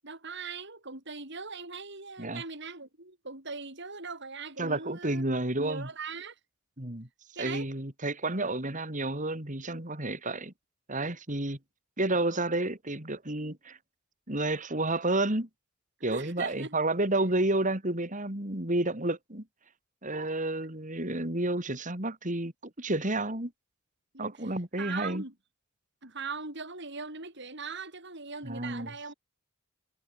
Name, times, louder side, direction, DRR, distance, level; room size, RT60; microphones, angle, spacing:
voice 1, 0.0-5.2 5.6-6.4 7.4-7.7 16.1-16.8 24.1-24.3 24.8-25.3 26.0-29.1, right 4 dB, 55° right, 7.9 m, -40 dB
voice 2, 4.6-5.9 6.8-7.1 7.4-10.5 10.9-11.6 12.0-13.8 14.3-15.5 16.0-19.4 20.0-23.5 24.2-25.2 28.4-28.9, right 2 dB, 40° right, 4.1 m, -30 dB
head